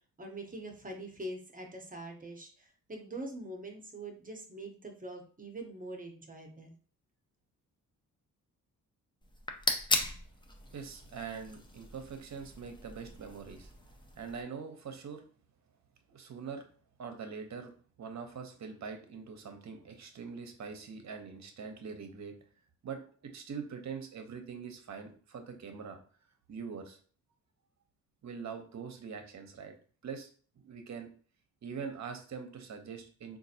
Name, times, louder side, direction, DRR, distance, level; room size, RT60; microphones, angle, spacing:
voice 1, 0.2-6.7, right 1 dB, 25° right, 3 dB, 0.8 m, -44 dB
sound 1, 9.2-14.4, left 2 dB, 15° left, 0.6 m, -37 dB
voice 2, 10.7-13.7 14.2-15.2 16.1-16.6 17.0-17.7 18.0-22.3 22.8-26.0 26.5-27.0 28.2-29.7 30.0-30.3 30.6-31.1 31.6-33.4, right 6 dB, 50° right, 5 dB, 0.8 m, -43 dB
3.9 x 2.5 x 2.7 m, 0.42 s
cardioid pair, 75°, 35 cm